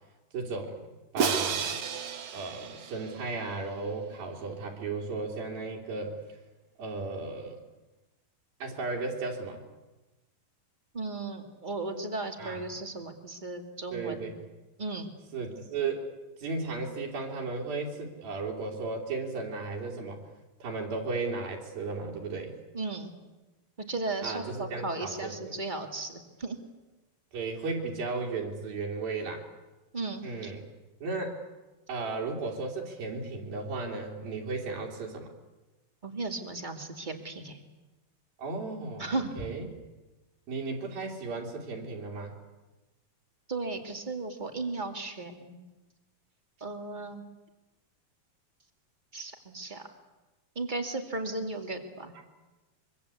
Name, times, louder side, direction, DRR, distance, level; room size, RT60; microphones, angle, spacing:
voice 1, 0.3-0.8 1.1-1.8 2.3-6.2 6.8-7.6 8.6-9.6 12.4-12.6 13.9-14.3 15.3-16.1 16.4-20.2 20.6-22.5 24.2-25.3 27.3-29.5 30.2-30.7 31.0-31.4 31.9-35.3 38.4-39.7 40.5-42.4, right 3 dB, 75° right, -1 dB, 4.7 m, -35 dB
Crash cymbal, 1.2-3.4, right 6 dB, 50° right, 1.8 m, -31 dB
voice 2, 10.9-14.3 14.8-15.1 22.7-23.1 23.9-26.6 29.9-30.5 36.0-37.6 39.0-39.4 43.5-45.6 46.6-47.2 49.1-49.9 50.5-52.1, right 3 dB, 15° right, 5 dB, 1.7 m, -35 dB
24.5 x 24.5 x 8.4 m, 1.1 s
omnidirectional pair, 4.2 m